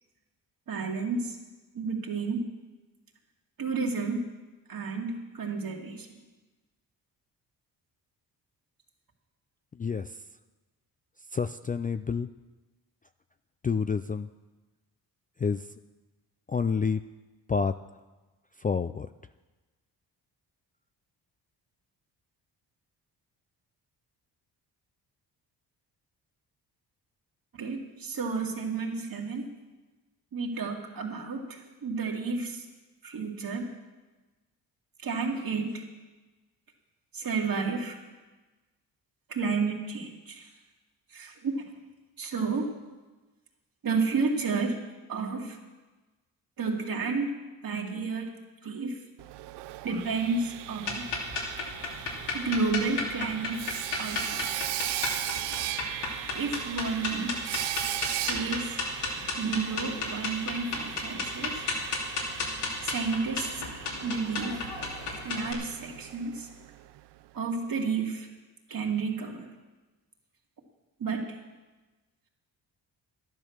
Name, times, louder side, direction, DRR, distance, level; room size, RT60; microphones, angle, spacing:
voice 1, 0.7-1.4 1.7-2.5 3.6-4.3 4.7-6.1 27.5-29.5 30.3-32.6 33.0-33.7 35.0-35.8 37.1-38.0 39.3-40.5 41.1-41.5 42.2-42.7 43.8-44.8 45.1-45.6 46.6-47.3 47.6-48.3 48.6-49.0 49.8-51.0 52.3-53.6 54.0-54.7 56.3-57.3 58.3-58.8 59.4-61.6 62.8-63.5 64.0-64.6 65.2-66.5 67.3-68.3 68.7-69.5 71.0-71.4, right 4 dB, 55° right, 1 dB, 2.4 m, -31 dB
voice 2, 11.3-12.3 13.6-14.3 15.4-15.6 16.5-17.0 17.5-17.7 18.6-19.1, left 5 dB, 20° left, 10 dB, 0.3 m, -28 dB
Sawing, 49.2-67.0, right 15 dB, 80° right, 0.5 m, -38 dB
sound 1, 50.8-65.5, left 4 dB, 90° left, 2.9 m, -33 dB
12.0 x 11.0 x 6.5 m, 1.2 s
cardioid pair, 80°, 41 cm